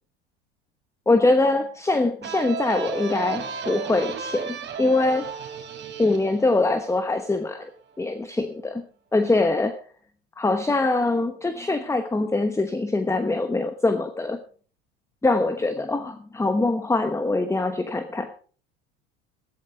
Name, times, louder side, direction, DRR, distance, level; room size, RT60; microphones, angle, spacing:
voice 1, 1.1-5.3 6.0-7.7 8.0-8.8 9.1-9.8 10.4-14.4 15.2-18.4, left 2 dB, 10° left, 10 dB, 1.1 m, -23 dB
sound 1, 2.2-7.7, right 6 dB, 35° right, 3.3 m, -34 dB
15.0 x 14.0 x 3.4 m, 0.40 s
hypercardioid pair, 85°, 33 cm